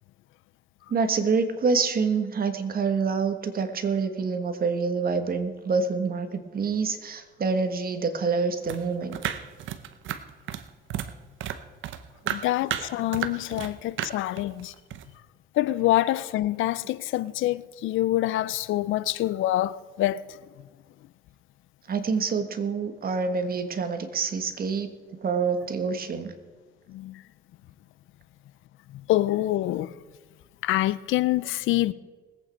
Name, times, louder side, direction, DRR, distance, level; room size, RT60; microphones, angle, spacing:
voice 1, 0.9-9.2 21.9-24.9 25.2-26.3, right 5 dB, 50° right, 1.6 m, -26 dB
sound 1, 8.6-11.1 11.4-13.7 14.0-15.0, right 10 dB, 75° right, 0.9 m, -33 dB
voice 2, 12.3-14.7 15.5-20.4 26.9-27.2 28.9-29.9 30.6-31.9, left 15 dB, 80° left, 0.5 m, -26 dB
20.5 x 8.7 x 4.5 m
cardioid pair, 90°, 20 cm